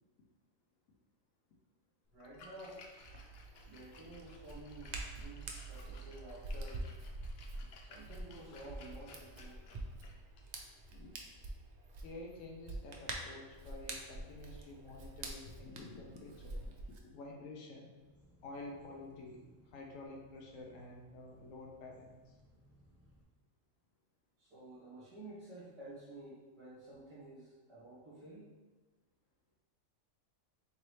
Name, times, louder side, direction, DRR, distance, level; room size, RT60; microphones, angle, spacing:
Splash splatter, 2.1-12.0, left 3 dB, 65° left, 0.7 m, -59 dB
voice 1, 2.1-2.8 3.6-6.9 7.8-9.6 24.4-28.4, right 1 dB, 25° right, -11 dB, 1.3 m, -52 dB
Hands, 3.0-17.0, right 2 dB, 80° right, 0.4 m, -46 dB
voice 2, 12.0-16.6 16.9-17.9 18.4-22.4, left 2 dB, 80° left, 0 dB, 1.0 m, -50 dB
sound 1, 17.9-23.2, equal, 20° left, 0.4 m, -64 dB
4.0 x 3.1 x 3.1 m, 1.2 s
omnidirectional pair, 1.4 m